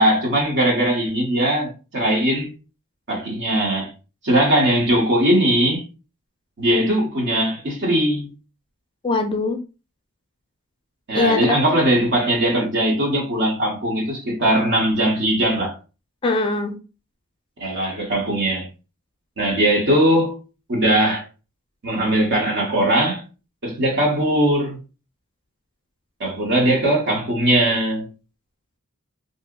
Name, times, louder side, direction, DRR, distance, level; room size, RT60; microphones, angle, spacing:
voice 1, 0.0-2.5 3.1-3.9 4.2-5.8 6.6-8.3 11.1-15.7 17.6-18.7 19.4-20.4 20.7-21.2 21.8-23.2 23.6-24.8 26.2-28.1, right 1 dB, 55° right, 0.9 m, -20 dB
voice 2, 9.0-9.6 11.1-11.8 16.2-16.8, left 3 dB, 25° left, 0.4 m, -22 dB
2.7 x 2.0 x 3.5 m
head